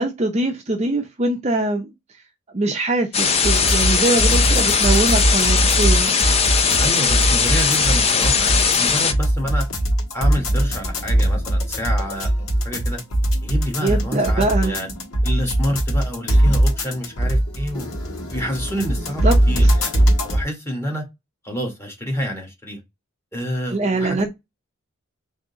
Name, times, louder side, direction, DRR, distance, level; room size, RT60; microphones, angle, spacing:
voice 1, 0.0-1.9 2.5-6.3 13.8-14.8 19.2-19.7 23.7-24.3, right 2 dB, 30° right, 0.5 m, -23 dB
sound 1, 3.1-9.1, left 6 dB, 25° left, 0.5 m, -19 dB
sound 2, 3.4-20.4, right 1 dB, 75° left, 1.4 m, -21 dB
voice 2, 6.8-9.6 10.1-13.0 13.4-14.9 15.2-17.9 18.3-21.0 21.4-22.8 23.3-24.3, equal, 10° left, 1.3 m, -28 dB
3.7 x 2.7 x 3.8 m
head